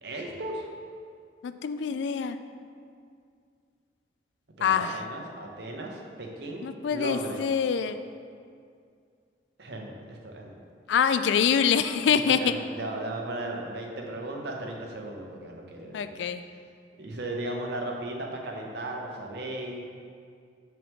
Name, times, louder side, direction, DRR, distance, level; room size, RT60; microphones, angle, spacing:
voice 1, 0.0-0.6 4.6-7.4 9.6-10.5 12.1-16.2 17.0-19.8, right 1 dB, 65° right, 0 dB, 0.9 m, -36 dB
voice 2, 1.4-2.4 4.6-5.0 6.6-8.0 10.9-12.5 15.9-16.4, left 7 dB, 75° left, 11 dB, 0.3 m, -25 dB
6.1 x 5.9 x 3.6 m, 2.2 s
head